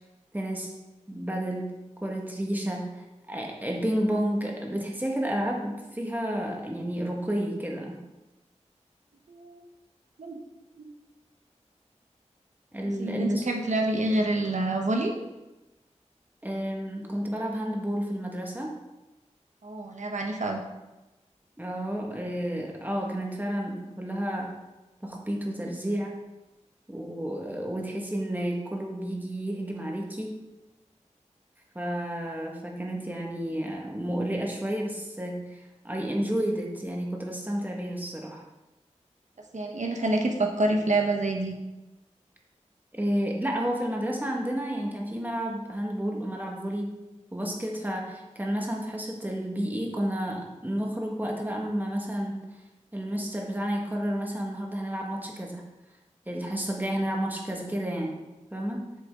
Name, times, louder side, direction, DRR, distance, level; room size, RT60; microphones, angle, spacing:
voice 1, 0.3-0.7 1.1-8.0 12.7-13.4 16.4-18.7 21.6-24.5 25.0-26.2 26.9-30.4 31.7-38.4 42.9-47.0 47.3-52.4 52.9-55.6 56.3-58.2 58.5-58.9, equal, 15° right, -1 dB, 1.7 m, -31 dB
voice 2, 9.3-9.6 10.2-10.4 10.8-10.9 13.0-15.1 19.6-20.6 39.5-41.5, right 2 dB, 80° right, 2 dB, 1.1 m, -27 dB
7.5 x 7.1 x 3.8 m, 1.0 s
wide cardioid pair, 65°, 12 cm